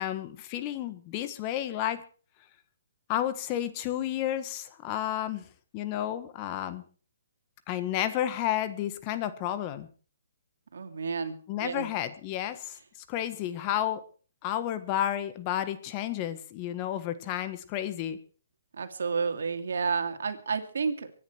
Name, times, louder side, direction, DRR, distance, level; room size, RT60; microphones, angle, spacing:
voice 1, 0.0-2.0 3.1-5.5 5.7-6.8 7.7-9.9 11.5-12.8 13.1-14.0 14.4-18.2, left 12 dB, 30° left, 11 dB, 1.5 m, -31 dB
voice 2, 10.7-11.9 18.7-21.1, right 5 dB, 80° right, 8 dB, 2.5 m, -31 dB
24.5 x 10.0 x 4.6 m, 0.39 s
hypercardioid pair, 150°, 0 cm